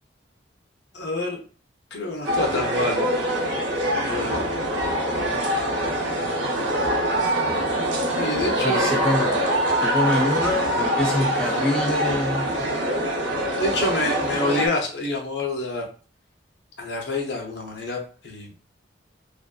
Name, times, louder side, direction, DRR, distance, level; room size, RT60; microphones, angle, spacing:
voice 1, 0.9-1.4 1.9-3.0 3.9-4.4 5.3-5.7 8.2-8.9 13.6-15.8 16.8-18.5, left 2 dB, 65° left, 0 dB, 0.7 m, -27 dB
sound 1, 2.2-14.7, right 1 dB, 80° right, 0.6 m, -24 dB
voice 2, 8.6-9.4 9.8-12.5, left 1 dB, 5° left, -2 dB, 0.3 m, -25 dB
2.5 x 2.4 x 2.2 m, 0.38 s
head